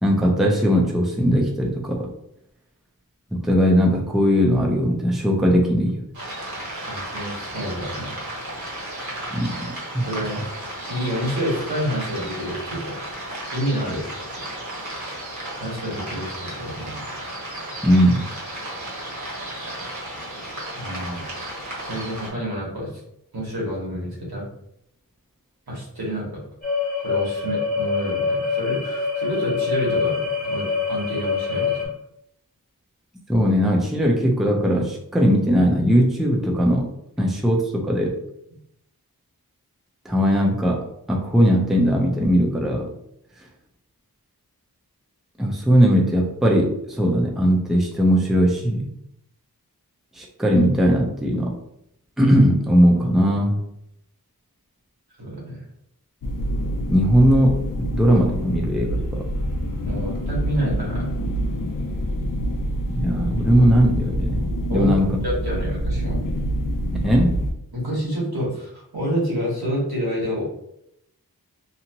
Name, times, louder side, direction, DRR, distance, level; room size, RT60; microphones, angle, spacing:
voice 1, 0.0-2.1 3.3-6.0 9.3-9.5 9.9-10.0 17.8-18.2 33.3-36.9 37.2-38.1 40.0-42.9 45.4-48.9 50.2-51.5 52.2-53.6 56.9-57.6 57.9-59.2 62.9-64.4 64.7-65.2 67.0-67.3, equal, ahead, -1 dB, 0.6 m, -19 dB
sound 1, 6.1-22.3, right 1 dB, 50° right, 1.2 m, -34 dB
voice 2, 6.9-8.1 10.0-10.6 10.9-13.0 13.5-14.4 15.6-17.1 20.7-21.2 21.8-22.9 23.3-24.4 25.7-26.4 27.0-31.9 55.2-55.6 59.8-61.1 64.7-64.9 65.2-66.2 67.7-70.4, equal, 80° right, -5 dB, 1.4 m, -28 dB
sound 2, 26.6-31.9, left 5 dB, 25° left, 1.0 m, -25 dB
sound 3, 56.2-67.5, equal, 60° left, 0.6 m, -26 dB
2.8 x 2.4 x 2.8 m, 0.77 s
wide cardioid pair, 50°, 37 cm